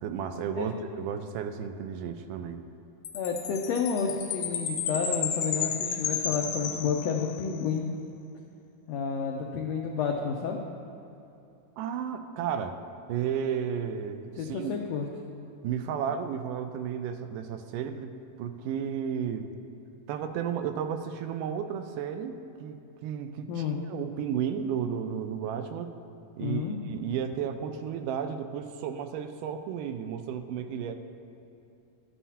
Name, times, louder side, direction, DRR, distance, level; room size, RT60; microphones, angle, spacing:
voice 1, 0.0-2.7 11.8-12.8 13.1-14.7 15.6-18.1 18.4-19.5 20.1-26.0 26.4-31.0, right 8 dB, 85° right, 8 dB, 2.2 m, -33 dB
Chime, 3.0-7.5, left 7 dB, 75° left, 1.6 m, -32 dB
voice 2, 3.1-7.9 8.9-10.6 14.4-15.1 23.5-23.8 26.4-26.8, left 6 dB, 90° left, 1 dB, 1.4 m, -30 dB
13.0 x 11.0 x 2.8 m, 2.8 s
omnidirectional pair, 3.7 m